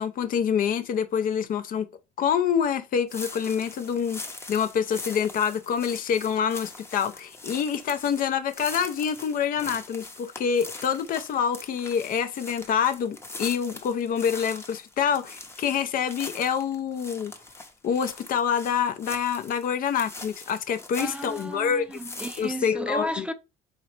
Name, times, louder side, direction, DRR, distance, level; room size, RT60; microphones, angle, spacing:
voice 1, 0.0-1.9 2.2-4.2 4.5-17.3 17.8-21.9 22.4-23.3, left 7 dB, 55° left, 0.6 m, -26 dB
sound 1, 3.1-21.6 21.9-22.6, left 2 dB, 15° left, 0.8 m, -42 dB
voice 2, 21.0-23.3, equal, 5° right, 0.4 m, -33 dB
4.0 x 3.9 x 3.2 m
cardioid pair, 110°, 17 cm